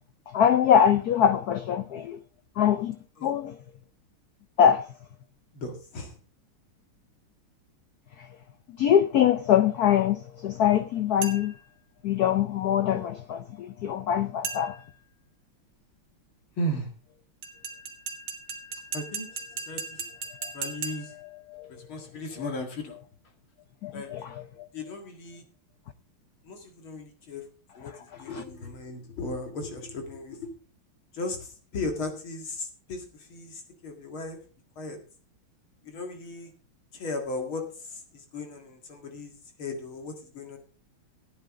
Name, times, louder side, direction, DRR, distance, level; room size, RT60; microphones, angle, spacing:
voice 1, 0.3-2.2 2.6-3.0 3.2-3.5 4.6-4.9 8.8-11.5 12.0-14.7 21.5-21.7 23.8-24.2, left 9 dB, 85° left, 0.8 m, -23 dB
voice 2, 5.5-6.2 16.6-16.9 18.9-20.1 20.5-21.1 21.7-23.0 23.9-24.1 24.7-25.4 26.4-27.5 27.7-30.5 31.1-34.4 34.8-35.0 35.8-36.5 36.9-40.6, left 1 dB, 70° left, 2.8 m, -36 dB
sound 1, 11.2-11.7 14.4-15.0 17.4-21.3, right 5 dB, 60° right, 2.3 m, -37 dB
15.0 x 9.4 x 3.6 m
omnidirectional pair, 2.4 m